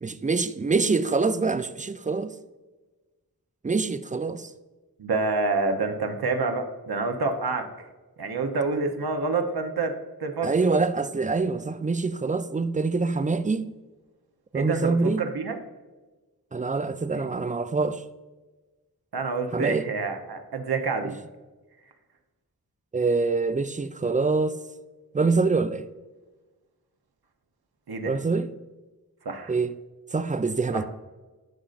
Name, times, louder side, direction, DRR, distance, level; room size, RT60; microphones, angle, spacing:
voice 1, 0.0-2.4 3.6-4.5 10.4-13.7 14.5-15.2 16.5-18.0 19.5-19.9 22.9-24.6 25.1-25.9 28.1-28.5 29.5-29.7 30.1-30.8, right 4 dB, 20° right, 0.4 m, -25 dB
voice 2, 5.0-7.7 8.2-10.5 14.5-15.6 17.1-17.3 19.1-21.2 27.9-28.2 29.2-29.5 30.7-30.8, right 3 dB, 85° right, 0.9 m, -27 dB
11.5 x 5.1 x 2.5 m
wide cardioid pair, 45°, 37 cm